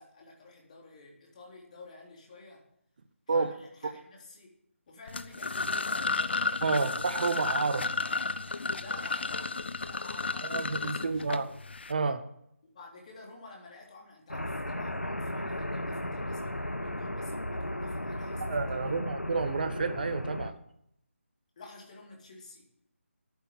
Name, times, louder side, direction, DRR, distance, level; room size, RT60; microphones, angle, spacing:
voice 1, 0.0-2.6 3.3-4.5 4.9-6.2 8.7-11.6 12.7-19.0 21.6-22.7, left 2 dB, 30° left, -1 dB, 3.7 m, -51 dB
sound 1, 5.1-11.9, left 3 dB, 55° left, 0.8 m, -32 dB
voice 2, 6.6-7.9 10.4-11.5 11.9-12.2 18.5-20.5, right 4 dB, 40° right, 10 dB, 0.9 m, -30 dB
sound 2, 14.3-20.5, left 1 dB, 90° left, 1.2 m, -35 dB
11.0 x 9.5 x 7.4 m, 0.75 s
figure-of-eight pair, 155°, 7 cm